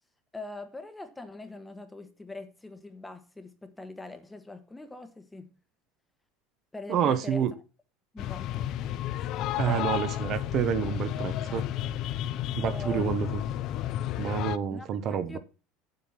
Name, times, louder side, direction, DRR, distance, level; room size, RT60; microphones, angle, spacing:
voice 1, 0.3-5.5 6.7-7.5 8.1-8.9 11.5-11.7 12.6-13.2 14.7-15.4, left 2 dB, 10° left, 1.2 m, -43 dB
voice 2, 6.9-7.5 9.6-11.7 12.5-13.3 14.2-15.4, right 8 dB, 40° right, 1.0 m, -28 dB
sound 1, 8.2-14.6, left 12 dB, 50° left, 0.6 m, -32 dB
7.9 x 7.7 x 5.8 m
supercardioid pair, 135°, 0 cm